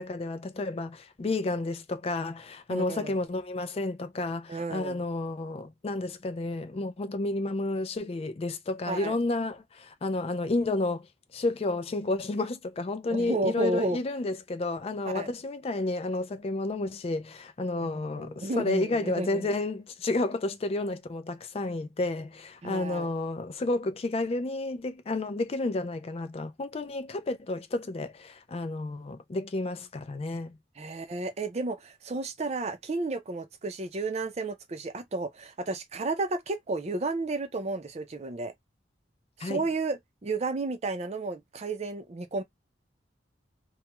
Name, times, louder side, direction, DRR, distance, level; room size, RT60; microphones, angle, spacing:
voice 1, 0.0-11.1 11.3-30.6 39.4-39.6, left 2 dB, 35° left, 0.3 m, -31 dB
voice 2, 2.7-3.2 4.5-5.0 8.9-9.2 13.1-14.0 15.1-15.3 18.2-19.5 22.6-23.1 30.8-38.5 39.4-42.4, right 3 dB, 35° right, 0.4 m, -32 dB
2.3 x 2.1 x 2.9 m
head